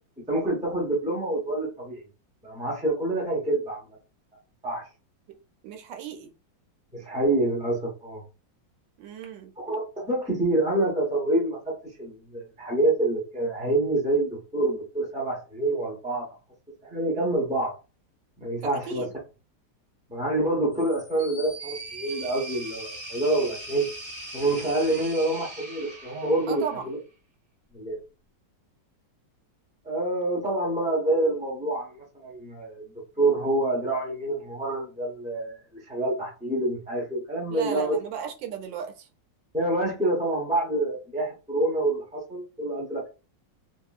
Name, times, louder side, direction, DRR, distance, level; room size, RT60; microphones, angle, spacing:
voice 1, 0.3-2.1 2.4-3.8 4.6-4.9 6.9-8.2 9.6-16.3 16.8-17.7 18.4-19.1 20.1-23.9 24.3-27.0 27.7-28.0 29.8-38.0 39.5-43.1, right 2 dB, 10° right, 0.4 m, -27 dB
voice 2, 5.6-6.3 9.0-9.5 18.6-19.1 26.5-26.9 37.5-39.1, right 7 dB, 80° right, 1.3 m, -35 dB
sound 1, 20.7-26.9, right 2 dB, 35° right, 0.7 m, -40 dB
2.8 x 2.7 x 2.3 m
omnidirectional pair, 2.0 m